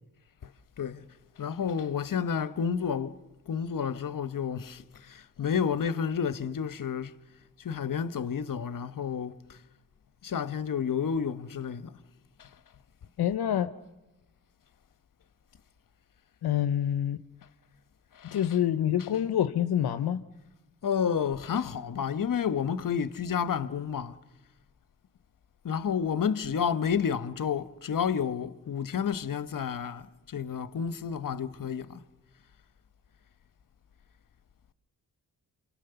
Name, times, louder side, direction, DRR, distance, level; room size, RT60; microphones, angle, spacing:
voice 1, 0.8-1.1 1.4-3.2 3.5-7.1 7.6-9.6 10.2-12.0 12.4-12.5 18.1-18.5 19.0-19.1 20.8-24.2 25.6-32.0, left 7 dB, 55° left, 1.2 m, -30 dB
voice 2, 13.2-13.7 16.4-17.2 18.2-20.2, left 10 dB, 75° left, 0.9 m, -27 dB
28.5 x 26.0 x 6.9 m
cardioid pair, 60°, 38 cm